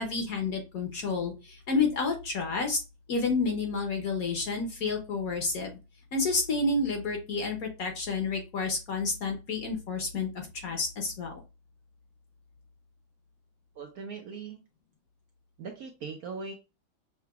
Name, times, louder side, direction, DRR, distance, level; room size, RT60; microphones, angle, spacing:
voice 1, 0.0-2.8 3.1-5.8 6.1-11.4, left 4 dB, 55° left, 3 dB, 1.2 m, -30 dB
voice 2, 13.8-14.6 15.6-16.5, right 5 dB, 65° right, 3 dB, 0.9 m, -40 dB
5.8 x 2.8 x 2.3 m, 0.28 s
omnidirectional pair, 2.1 m